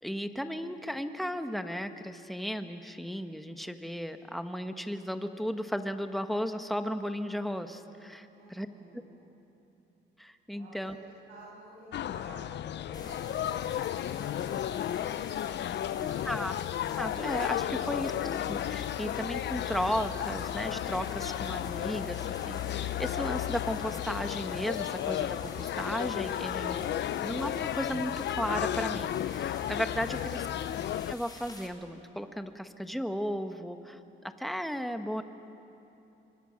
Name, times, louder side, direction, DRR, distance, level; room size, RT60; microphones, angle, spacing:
voice 1, 0.0-8.7 10.2-11.0 16.0-16.5 17.0-26.9 27.2-30.5 31.1-34.0 34.2-35.2, equal, ahead, 7 dB, 1.4 m, -35 dB
voice 2, 8.3-9.3 10.5-16.4 30.1-30.5, right 2 dB, 85° right, -5 dB, 7.4 m, -54 dB
sound 1, 11.9-31.1, left 11 dB, 60° left, 0.6 m, -33 dB
sound 2, 12.9-31.7, left 2 dB, 20° left, 3.9 m, -50 dB
28.0 x 24.0 x 6.5 m, 2.9 s
cardioid pair, 90°, 20 cm